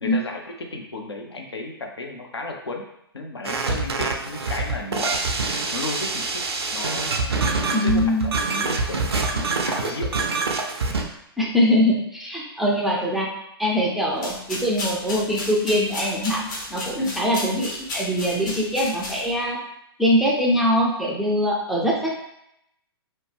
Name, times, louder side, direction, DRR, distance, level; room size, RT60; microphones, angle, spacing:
voice 1, 0.0-2.9 3.1-5.2 5.7-6.4 6.7-7.5 7.8-10.3 16.9-17.1 18.5-18.7, left 2 dB, 80° left, 2 dB, 0.6 m, -34 dB
sound 1, 3.4-11.0, right 3 dB, 75° right, 0.5 m, -25 dB
voice 2, 7.7-8.2 11.4-13.3 13.6-19.6 20.0-22.1, equal, ahead, -4 dB, 0.4 m, -22 dB
sound 2, 14.1-19.5, left 1 dB, 50° left, 0.9 m, -34 dB
2.8 x 2.1 x 3.3 m, 0.78 s
figure-of-eight pair, 120°, 13 cm